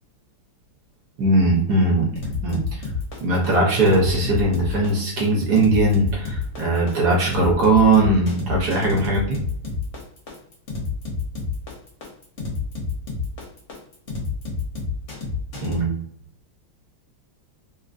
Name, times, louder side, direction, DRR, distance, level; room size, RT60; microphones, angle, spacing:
voice 1, 1.2-2.1 2.4-2.6 3.2-9.4 15.6-16.0, right 2 dB, 60° right, -2 dB, 1.3 m, -19 dB
sound 1, 2.2-15.8, left 4 dB, 50° left, 0.9 m, -29 dB
3.8 x 2.8 x 2.5 m, 0.65 s
omnidirectional pair, 2.2 m